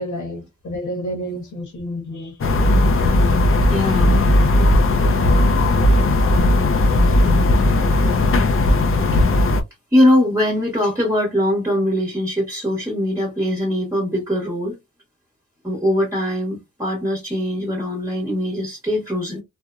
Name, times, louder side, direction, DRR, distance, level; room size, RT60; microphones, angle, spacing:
voice 1, 0.0-2.4, equal, 75° left, 1.2 m, -29 dB
sound 1, 2.4-9.6, left 1 dB, 45° left, 0.5 m, -16 dB
voice 2, 3.7-4.2 9.1-9.5 9.9-14.8 15.6-19.4, left 1 dB, 10° right, 0.9 m, -21 dB
2.8 x 2.0 x 2.4 m
wide cardioid pair, 120°, 30 cm